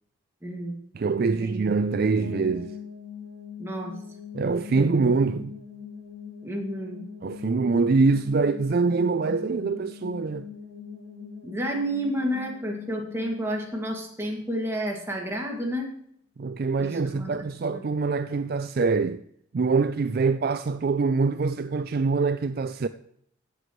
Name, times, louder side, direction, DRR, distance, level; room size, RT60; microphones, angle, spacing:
voice 1, 0.4-0.7 1.4-1.6 3.6-3.9 4.7-5.0 6.4-7.0 11.4-15.9 16.8-17.3 17.7-17.9, equal, 10° right, 2.0 m, -31 dB
voice 2, 0.9-2.7 4.3-5.6 7.2-10.5 16.4-19.2 19.5-22.9, right 4 dB, 45° right, 0.3 m, -24 dB
sound 1, 2.2-15.1, left 6 dB, 50° left, 3.5 m, -42 dB
16.0 x 7.9 x 3.1 m
head